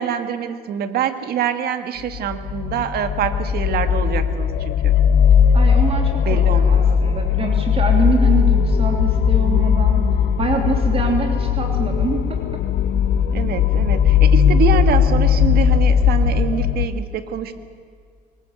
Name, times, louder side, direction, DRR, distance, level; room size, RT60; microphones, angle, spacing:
voice 1, 0.0-4.9 6.3-6.8 13.3-17.6, right 8 dB, 65° right, 9 dB, 1.8 m, -25 dB
sound 1, 2.1-16.9, left 7 dB, 65° left, 0.8 m, -17 dB
voice 2, 5.5-10.1 10.4-12.6, right 4 dB, 35° right, 2 dB, 3.1 m, -25 dB
23.5 x 19.5 x 8.2 m, 2.1 s
cardioid pair, 110°, 17 cm